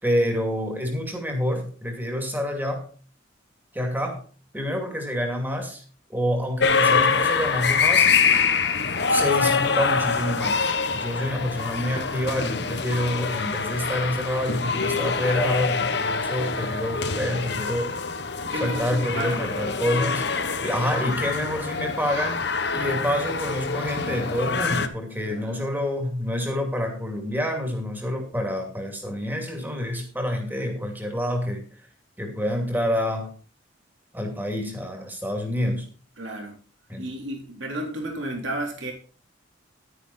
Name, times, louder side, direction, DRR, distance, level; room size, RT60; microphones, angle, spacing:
voice 1, 0.0-2.9 3.7-4.2 4.5-5.8 6.1-8.1 9.1-10.7 11.0-17.9 18.6-20.3 20.6-22.4 22.7-31.7 32.2-33.3 34.1-35.9 36.9-37.1, left 1 dB, 10° right, 3 dB, 2.5 m, -27 dB
sound 1, 6.6-24.9, left 5 dB, 60° left, 1.1 m, -25 dB
voice 2, 18.4-19.4 25.3-25.7 36.2-36.6 37.0-38.9, right 1 dB, 75° right, 1 dB, 3.7 m, -32 dB
11.5 x 10.0 x 4.1 m, 0.39 s
head